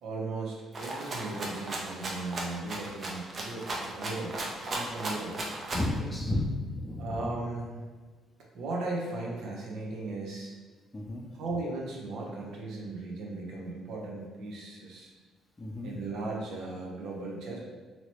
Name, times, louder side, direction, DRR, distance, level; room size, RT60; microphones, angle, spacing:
voice 1, 0.0-4.3 4.7-5.4 7.0-7.8 8.5-10.5 11.3-15.1 15.8-17.6, right 2 dB, 75° right, -2 dB, 0.8 m, -37 dB
Rattle (instrument), 0.7-6.0, right 2 dB, 45° right, 0.7 m, -36 dB
voice 2, 5.7-7.3 10.9-11.2 15.6-15.9, left 1 dB, 20° left, 0 dB, 0.6 m, -32 dB
2.9 x 2.9 x 3.0 m, 1.5 s
supercardioid pair, 75°, 0 cm